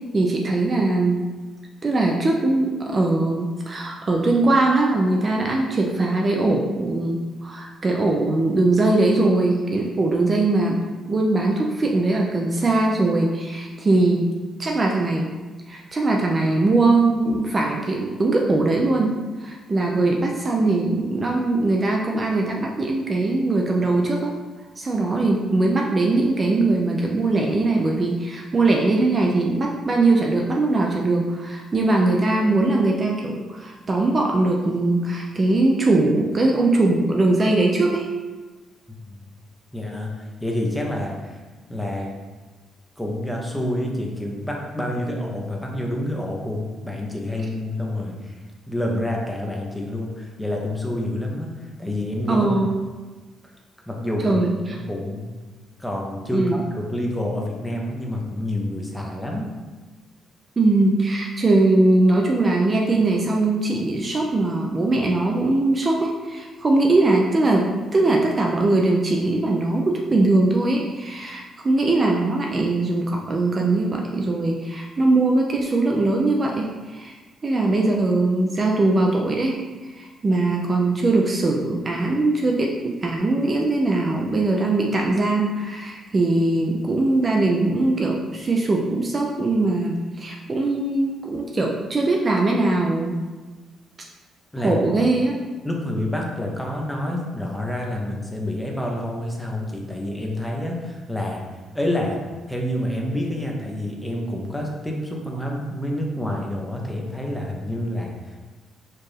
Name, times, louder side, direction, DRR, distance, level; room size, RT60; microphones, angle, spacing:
voice 1, 0.1-1.2 1.8-14.3 14.6-15.3 15.7-19.1 19.4-24.3 24.8-38.1 52.3-52.7 54.2-54.5 56.3-56.6 60.6-93.2 94.6-95.3, right 2 dB, 35° right, 0 dB, 0.4 m, -21 dB
voice 2, 39.7-41.4 41.7-42.1 43.0-48.4 48.7-52.7 53.9-54.4 54.7-55.3 55.8-59.5 94.5-94.8 95.6-101.4 101.7-102.2 102.5-108.5, left 1 dB, 5° left, -1 dB, 0.7 m, -28 dB
4.4 x 2.5 x 3.3 m, 1.3 s
cardioid pair, 90°, 0 cm